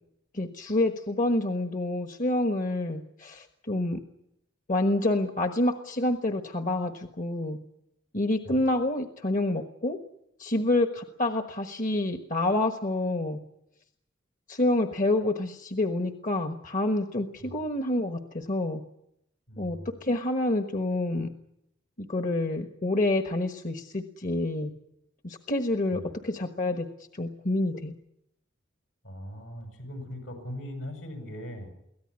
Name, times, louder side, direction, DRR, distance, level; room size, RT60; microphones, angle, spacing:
voice 1, 0.3-4.0 4.7-7.6 8.1-10.0 10.4-13.4 14.5-18.8 19.6-21.3 22.0-24.7 25.2-26.9 27.1-27.9, left 2 dB, 45° left, 6 dB, 1.3 m, -28 dB
voice 2, 19.5-19.9 25.9-26.1 29.0-31.7, equal, 80° left, 5 dB, 7.7 m, -40 dB
23.5 x 17.5 x 9.9 m, 0.81 s
head